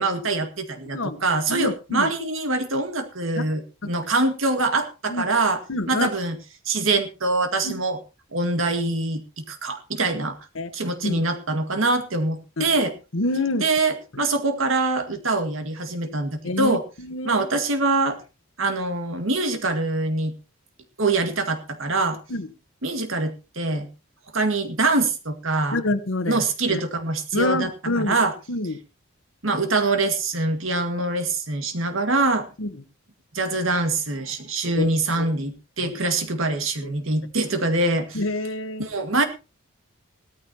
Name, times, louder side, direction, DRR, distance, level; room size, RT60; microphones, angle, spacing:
voice 1, 0.0-3.6 3.9-5.6 5.9-6.4 6.7-8.0 8.3-10.4 10.7-13.0 13.6-16.8 17.3-18.2 18.6-20.3 21.0-22.2 22.8-23.9 24.3-25.8 26.2-28.3 29.4-32.5 33.3-38.2 38.8-39.2, right 3 dB, 70° right, 7 dB, 2.0 m, -24 dB
voice 2, 1.5-2.1 3.4-3.5 5.1-5.2 5.7-6.1 7.6-7.7 10.5-10.7 11.0-11.2 12.6-12.7 13.1-13.6 16.4-17.5 22.3-22.5 25.7-26.8 27.3-28.2 28.5-28.8 32.6-32.7 34.6-34.9 35.2-35.3 35.8-35.9 36.8-36.9 38.1-38.8, left 2 dB, 70° left, 10 dB, 1.2 m, -27 dB
17.5 x 13.5 x 2.9 m, 0.29 s
head